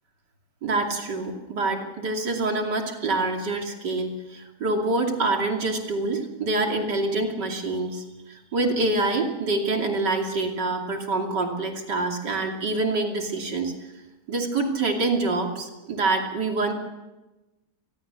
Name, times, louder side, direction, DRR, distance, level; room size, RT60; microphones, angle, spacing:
voice 1, 0.6-8.0 8.3-13.7 14.3-16.7, right 2 dB, 90° right, 2 dB, 3.3 m, -26 dB
27.5 x 21.0 x 7.0 m, 1.1 s
omnidirectional pair, 1.8 m